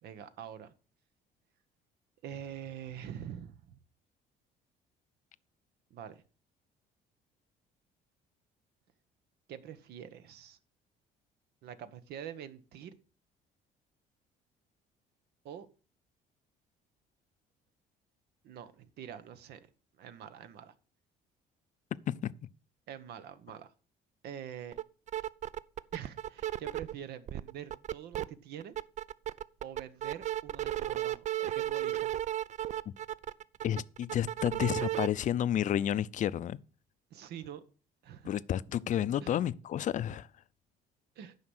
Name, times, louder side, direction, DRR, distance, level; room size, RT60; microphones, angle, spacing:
voice 1, 0.0-0.7 2.2-3.8 5.9-6.2 9.5-10.6 11.6-12.9 15.4-15.7 18.4-19.6 20.0-20.7 22.9-23.7 24.2-24.8 25.9-28.8 29.6-32.1 37.1-37.6 38.0-38.3 39.2-39.4 41.1-41.4, right 9 dB, 75° right, 1.0 m, -45 dB
sound 1, 24.7-24.8 25.1-26.9 27.3-28.2 28.6-35.1, right 13 dB, 45° right, 0.4 m, -34 dB
voice 2, 33.6-36.6 38.2-40.3, left 10 dB, 50° left, 0.5 m, -31 dB
9.6 x 5.8 x 6.2 m
cardioid pair, 110°, 17 cm